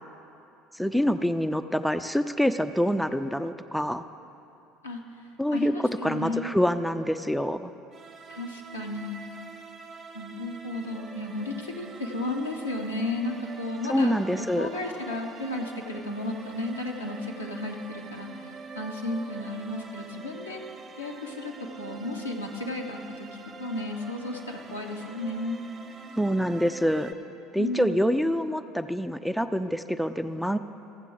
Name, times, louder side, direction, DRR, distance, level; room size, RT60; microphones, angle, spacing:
voice 1, 0.7-4.0 5.4-7.7 13.9-14.7 26.2-27.1 27.5-30.6, equal, ahead, 10 dB, 0.4 m, -26 dB
voice 2, 5.5-6.5 8.3-9.2 10.1-20.6 21.0-23.3 23.6-25.6 27.6-28.0, left 2 dB, 90° left, -1 dB, 0.9 m, -33 dB
sound 1, 7.9-27.1, right 4 dB, 30° right, 0.8 m, -45 dB
15.0 x 7.4 x 3.8 m, 2.7 s
figure-of-eight pair, 65°, 0 cm